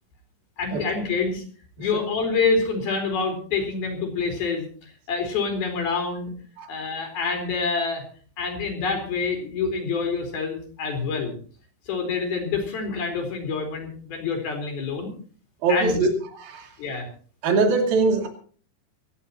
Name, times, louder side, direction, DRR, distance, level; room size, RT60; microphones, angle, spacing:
voice 1, 0.6-1.4 1.8-6.3 6.7-8.0 8.4-11.3 11.9-15.1 15.7-16.1 16.8-17.1, left 4 dB, 90° left, 3 dB, 6.1 m, -27 dB
voice 2, 15.6-16.1 16.4-16.7 17.4-18.3, right 3 dB, 80° right, 2 dB, 4.5 m, -22 dB
25.5 x 15.5 x 3.0 m, 0.44 s
omnidirectional pair, 4.2 m